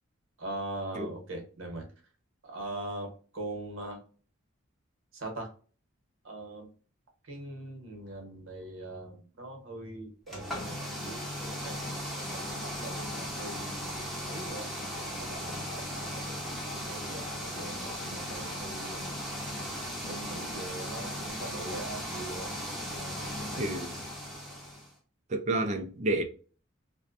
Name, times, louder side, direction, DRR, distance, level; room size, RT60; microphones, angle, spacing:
voice 1, 0.4-1.8 2.4-4.0 5.1-5.5 6.2-6.7 7.2-11.2 11.5-14.7 15.2-19.2 20.0-22.5 22.9-23.7, right 2 dB, 65° right, 1.0 m, -42 dB
sound 1, 10.3-24.9, equal, ahead, 0.8 m, -37 dB
voice 2, 23.6-23.9 25.3-26.2, right 2 dB, 35° right, 0.4 m, -30 dB
2.5 x 2.1 x 2.4 m
head